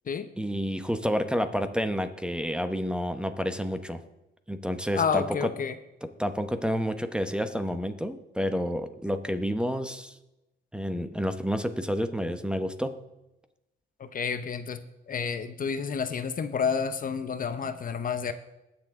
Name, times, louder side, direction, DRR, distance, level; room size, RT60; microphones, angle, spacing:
voice 1, 0.4-4.0 4.5-5.5 6.0-10.1 10.7-13.0, equal, 5° right, 9 dB, 0.9 m, -29 dB
voice 2, 4.9-5.7 14.0-18.3, left 6 dB, 45° left, 10 dB, 0.8 m, -30 dB
20.5 x 7.0 x 3.7 m, 0.95 s
cardioid pair, 90°, 20 cm